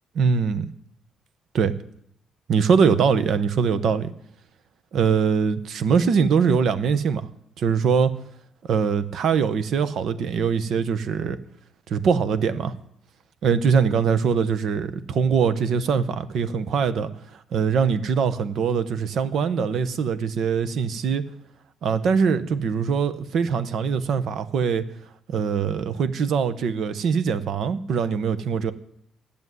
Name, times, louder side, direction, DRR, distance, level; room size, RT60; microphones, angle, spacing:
voice 1, 0.1-0.7 1.5-1.7 2.5-4.1 4.9-7.3 7.6-8.1 8.7-11.4 11.9-12.7 13.4-17.1 17.5-21.2 21.8-24.8 25.3-28.7, right 6 dB, 70° right, 12 dB, 1.0 m, -22 dB
12.5 x 7.0 x 9.5 m, 0.72 s
cardioid pair, 90°, 0 cm